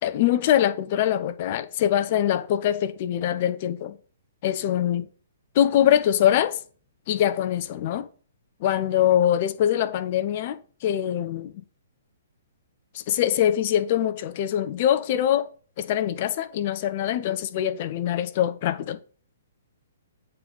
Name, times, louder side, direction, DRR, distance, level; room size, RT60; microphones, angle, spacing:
voice 1, 0.0-4.0 4.4-5.1 5.5-6.6 7.1-8.1 8.6-11.5 12.9-15.5 15.8-19.0, left 11 dB, 40° left, 0.7 m, -23 dB
7.8 x 4.1 x 5.1 m
figure-of-eight pair, 120°, 0 cm